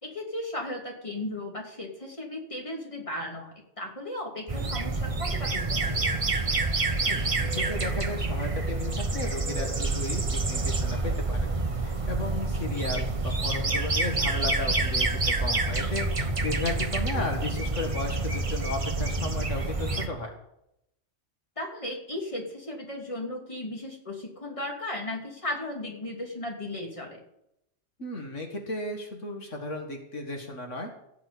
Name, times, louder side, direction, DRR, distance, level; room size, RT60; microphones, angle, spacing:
voice 1, 0.0-6.0 17.1-17.3 21.6-27.2, left 1 dB, 25° left, -1 dB, 3.0 m, -36 dB
sound 1, 4.5-20.1, right 3 dB, 30° right, 1.1 m, -28 dB
voice 2, 7.1-11.5 11.8-20.3 28.0-30.9, left 2 dB, 80° left, 2 dB, 2.2 m, -35 dB
16.5 x 6.0 x 8.4 m, 0.79 s
omnidirectional pair, 1.2 m